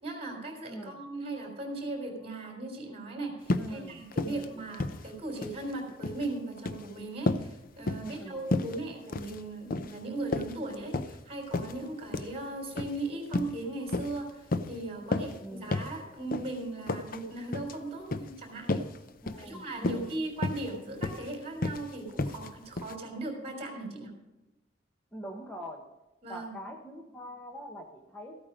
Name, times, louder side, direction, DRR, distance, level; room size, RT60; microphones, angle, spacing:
voice 1, 0.0-18.8 19.4-24.1 26.2-26.5, right 2 dB, 35° right, 2 dB, 3.6 m, -38 dB
sound 1, 3.5-3.7 4.1-4.4 4.7-5.6 5.9-6.2 6.6-6.9 7.3-7.5 7.9-8.2 8.5-8.8 9.1-9.4 9.7-10.0 10.3-11.2 11.5-11.7 12.1-12.3 12.8-13.0 13.3-13.6 13.9-14.2 14.5-14.7 15.1-15.4 15.7-15.9 16.3-16.5 16.9-17.2 17.5-17.7 18.1-18.3 18.7-19.0 19.3-19.4 19.8-20.1 20.4-20.7 21.0-21.3 21.6-21.8 22.2-22.5 22.8-22.9, left 2 dB, 50° left, 0.6 m, -31 dB
voice 2, 3.5-4.6 8.0-8.7 15.0-15.8 19.2-20.2 25.1-25.8 26.3-28.4, equal, 10° left, 2 dB, 1.1 m, -43 dB
14.5 x 8.9 x 5.0 m, 1.0 s
head